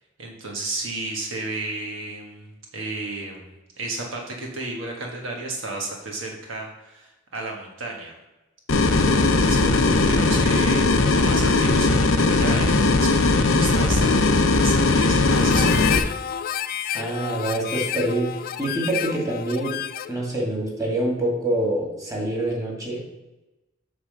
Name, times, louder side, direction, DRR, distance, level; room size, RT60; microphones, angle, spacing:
voice 1, 0.2-8.1 8.8-15.8, right 2 dB, 75° right, 0 dB, 1.5 m, -33 dB
sound 1, 8.7-16.0, left 3 dB, 85° left, 0.8 m, -19 dB
Harmonica, 15.3-20.2, left 10 dB, 50° left, 0.4 m, -30 dB
voice 2, 16.9-19.8 20.1-23.1, right 1 dB, 20° right, -2 dB, 2.4 m, -26 dB
8.4 x 3.7 x 6.6 m, 1.0 s
head